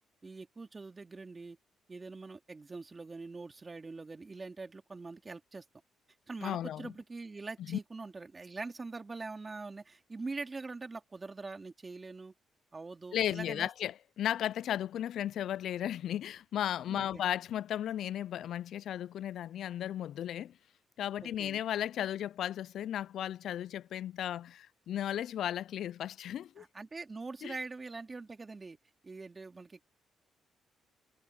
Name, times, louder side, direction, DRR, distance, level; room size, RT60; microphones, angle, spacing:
voice 1, 0.2-1.6 1.9-5.6 6.3-12.3 12.7-13.7 16.9-17.2 21.2-21.6 26.6-28.8 29.0-29.9, right 3 dB, 25° right, 2.5 m, -43 dB
voice 2, 6.4-6.9 7.6-7.8 13.1-20.6 21.0-26.6 27.4-27.6, left 11 dB, 70° left, 0.3 m, -35 dB
cardioid pair, 90°, 0 cm